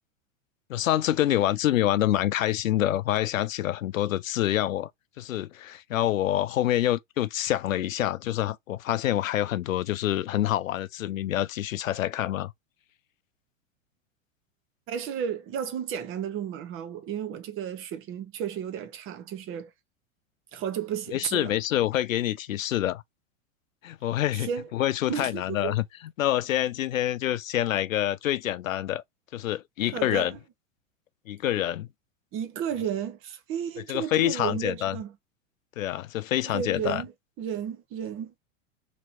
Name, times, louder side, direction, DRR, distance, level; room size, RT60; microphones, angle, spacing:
voice 1, 0.7-4.9 5.2-12.5 21.1-23.0 23.8-25.8 26.2-29.0 29.3-30.3 31.3-31.9 33.9-35.0 35.8-37.0, left 13 dB, 90° left, 0.5 m, -26 dB
voice 2, 14.9-19.7 20.5-21.5 24.3-24.7 25.1-25.8 29.9-30.4 32.3-35.1 36.5-37.1 37.4-38.3, right 8 dB, 35° right, 0.8 m, -33 dB
3.0 x 2.9 x 2.5 m
hypercardioid pair, 105°, 39 cm